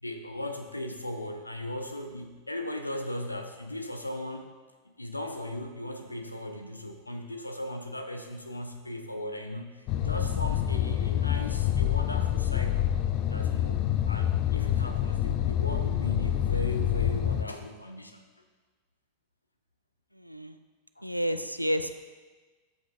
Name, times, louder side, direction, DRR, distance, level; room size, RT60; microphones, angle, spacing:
voice 1, 0.0-4.5 4.8-12.9 13.3-18.2 21.0-21.1, left 1 dB, 85° left, 6 dB, 0.7 m, -37 dB
sound 1, 9.9-17.4, left 11 dB, 40° left, 0.4 m, -27 dB
voice 2, 20.1-20.6 21.0-21.9, equal, 90° right, 10 dB, 0.3 m, -30 dB
13.0 x 5.5 x 2.5 m, 1.4 s
figure-of-eight pair, 90°, 0 cm